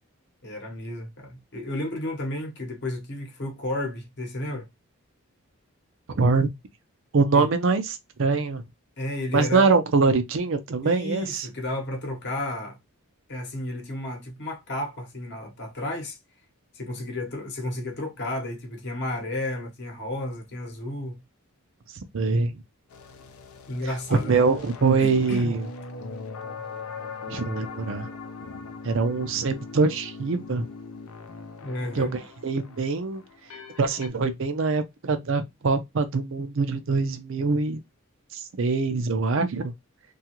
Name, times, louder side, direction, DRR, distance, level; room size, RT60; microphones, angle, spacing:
voice 1, 0.4-4.7 7.3-7.5 9.0-9.7 10.8-12.8 13.3-16.2 16.7-21.2 23.7-24.4 25.0-25.5 31.6-32.2, left 1 dB, 50° left, 0.9 m, -32 dB
voice 2, 6.1-6.5 7.1-8.6 9.3-11.5 22.1-22.6 24.1-25.7 27.3-28.1 28.8-30.7 31.9-33.2 33.8-37.8 38.3-39.7, right 4 dB, 60° right, 0.5 m, -24 dB
sound 1, 22.9-34.1, left 4 dB, 75° left, 0.5 m, -40 dB
2.8 x 2.3 x 2.9 m
head